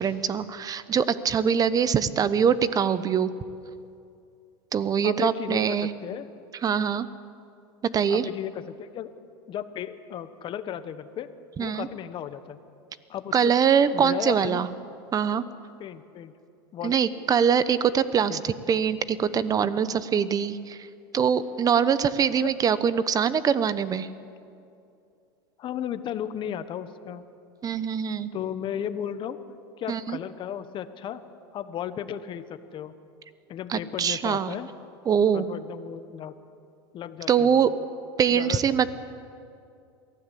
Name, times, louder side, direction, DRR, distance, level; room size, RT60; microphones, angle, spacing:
voice 1, 0.0-3.3 4.7-5.9 6.6-7.1 7.9-8.3 11.6-11.9 13.3-14.7 15.1-15.4 16.8-20.8 21.1-24.1 27.6-28.3 29.9-30.2 33.7-34.5 35.1-35.5 37.3-37.7 38.2-38.9, right 7 dB, 30° right, 15 dB, 1.0 m, -23 dB
voice 2, 5.0-6.3 8.1-9.1 9.5-11.3 11.6-12.6 13.1-13.5 13.9-14.6 15.8-16.3 16.7-17.0 18.3-18.4 22.4-22.5 25.6-27.2 28.3-29.4 29.8-31.2 31.5-33.0 33.5-34.7 35.3-36.3 36.9-37.7 38.3-38.6, left 10 dB, 40° left, 11 dB, 1.2 m, -35 dB
23.0 x 15.5 x 8.5 m, 2.5 s
supercardioid pair, 110°, 13 cm